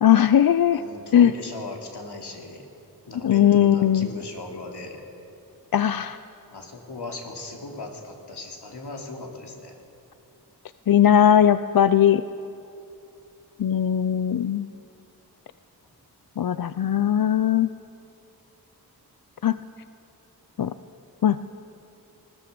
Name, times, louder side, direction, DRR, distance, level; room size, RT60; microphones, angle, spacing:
voice 1, 0.0-0.8 1.1-1.3 3.2-4.1 5.7-6.2 10.9-12.2 13.6-14.7 16.4-17.7 19.4-19.5 20.6-20.7 21.2-21.4, left 10 dB, 65° left, 12 dB, 0.6 m, -19 dB
voice 2, 0.6-2.7 3.1-5.0 6.5-9.8, left 2 dB, 85° left, 0 dB, 3.1 m, -38 dB
19.5 x 19.0 x 6.9 m, 2.7 s
wide cardioid pair, 60°, 39 cm